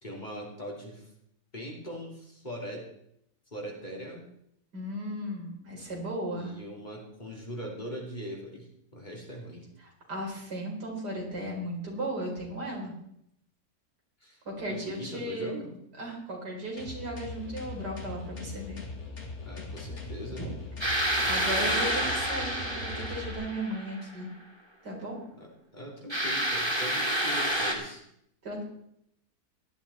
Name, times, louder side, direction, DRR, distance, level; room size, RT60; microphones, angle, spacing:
voice 1, 0.0-1.1 1.5-2.8 3.5-4.2 6.2-9.6 14.2-14.4 14.7-15.7 19.4-20.5 25.4-28.0, equal, 25° left, -2 dB, 2.9 m, -41 dB
voice 2, 4.7-6.5 10.1-12.9 14.4-15.5 16.0-18.8 20.3-20.5 21.3-24.3 24.8-25.2 28.4-28.6, right 1 dB, 85° right, -1 dB, 4.8 m, -36 dB
sound 1, 16.8-23.3, left 3 dB, 45° left, 2.5 m, -40 dB
sound 2, 20.8-24.0 26.1-27.7, right 1 dB, 15° right, 2.8 m, -29 dB
17.0 x 12.0 x 4.2 m, 0.74 s
omnidirectional pair, 1.7 m